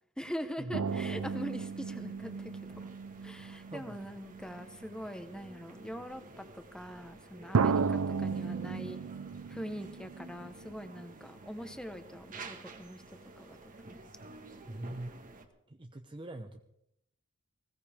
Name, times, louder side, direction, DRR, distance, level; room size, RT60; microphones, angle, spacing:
voice 1, 0.2-2.8 3.2-9.0 9.5-14.0, equal, 5° left, 8 dB, 1.2 m, -43 dB
sound 1, 0.7-4.7 5.5-5.6 7.5-10.9 11.2-11.3, right 5 dB, 90° right, 0.6 m, -34 dB
sound 2, 0.8-15.5, right 2 dB, 40° right, 1.6 m, -52 dB
voice 2, 3.7-4.0 14.7-15.2 15.7-16.6, right 1 dB, 25° right, 4 dB, 0.8 m, -42 dB
20.0 x 17.0 x 3.6 m, 0.78 s
head